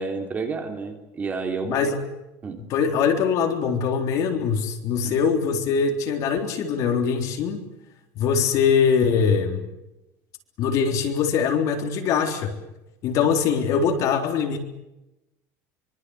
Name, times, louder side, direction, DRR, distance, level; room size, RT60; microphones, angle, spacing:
voice 1, 0.0-1.8 2.4-2.6 5.0-5.1, right 4 dB, 20° right, 4 dB, 3.2 m, -30 dB
voice 2, 1.6-2.0 2.7-7.7 8.2-9.6 10.6-12.6 13.0-14.6, left 6 dB, 45° left, 4 dB, 3.8 m, -22 dB
25.0 x 24.5 x 8.1 m, 0.95 s
cardioid pair, 155°, 8 cm